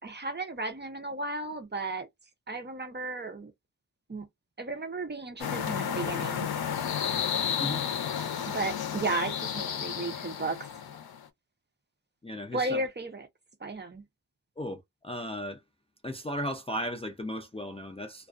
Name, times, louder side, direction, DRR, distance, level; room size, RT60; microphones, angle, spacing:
voice 1, 0.0-2.1 2.5-3.5 4.1-4.3 4.6-6.5 8.5-10.6 12.5-13.3 13.6-14.0, right 2 dB, 30° right, 0.6 m, -34 dB
sound 1, 5.4-11.2, left 8 dB, 75° left, 0.6 m, -32 dB
voice 2, 12.2-12.8 14.6-15.6 16.0-18.3, equal, 15° left, 0.4 m, -36 dB
2.3 x 2.3 x 2.3 m
wide cardioid pair, 95°, 38 cm